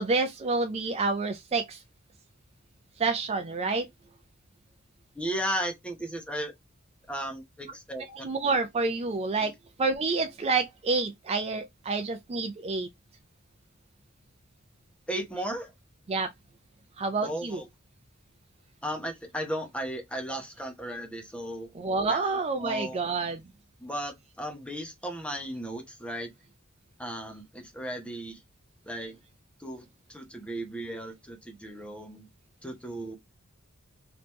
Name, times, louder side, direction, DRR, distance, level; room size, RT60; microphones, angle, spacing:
voice 1, 0.0-1.8 3.0-3.9 8.1-9.5 9.8-12.9 16.1-16.3 17.0-17.6 21.7-23.4, right 3 dB, 30° right, 0.4 m, -28 dB
voice 2, 5.1-6.5 7.1-8.3 9.3-9.5 15.1-15.7 17.2-17.6 18.8-21.7 22.1-22.2 22.6-23.0 23.8-26.3 27.0-28.4 28.8-29.2 29.6-32.3 32.6-33.2, right 1 dB, 5° left, 0.9 m, -35 dB
3.3 x 3.0 x 3.0 m
head